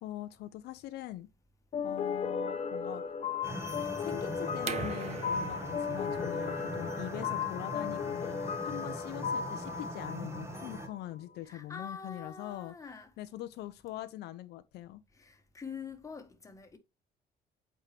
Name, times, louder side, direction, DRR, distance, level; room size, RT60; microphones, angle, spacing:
voice 1, 0.0-1.3 1.8-3.0 4.0-12.7 13.2-15.0, left 14 dB, 75° left, 0.6 m, -43 dB
sound 1, 1.7-11.0, left 6 dB, 40° left, 0.9 m, -36 dB
sound 2, 3.4-10.9, right 1 dB, 15° right, 1.5 m, -41 dB
sound 3, 4.6-10.2, right 7 dB, 40° right, 0.9 m, -45 dB
voice 2, 11.4-13.1 15.1-16.8, left 5 dB, 20° left, 1.5 m, -45 dB
8.3 x 4.7 x 3.3 m
cardioid pair, 110°, 17 cm